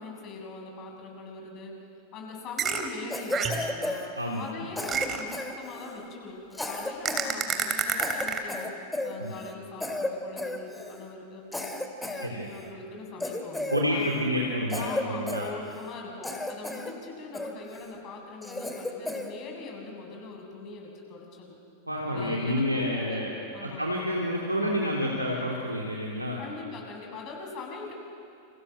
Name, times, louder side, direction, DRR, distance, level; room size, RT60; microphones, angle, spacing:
voice 1, 0.0-1.7 2.1-4.1 4.4-8.7 9.0-14.1 14.7-21.6 22.1-23.8 26.4-27.9, left 3 dB, 35° left, 0 dB, 7.8 m, -41 dB
sound 1, 2.6-2.9 3.3-3.7 4.9-5.3 7.0-8.4, right 7 dB, 25° right, 3.1 m, -28 dB
Cough, 3.1-4.5 4.8-6.0 6.5-7.3 7.6-7.7 8.0-9.5 9.8-10.1 10.4-11.0 11.5-12.7 13.2-14.3 14.7-15.9 16.2-16.9 17.3-17.9 18.4-19.3, left 2 dB, 5° left, 2.9 m, -34 dB
voice 2, 13.7-15.4 21.9-23.3 23.6-26.4, equal, 85° right, -2 dB, 3.1 m, -29 dB
29.5 x 29.5 x 6.5 m, 2.5 s
figure-of-eight pair, 90°, 0 cm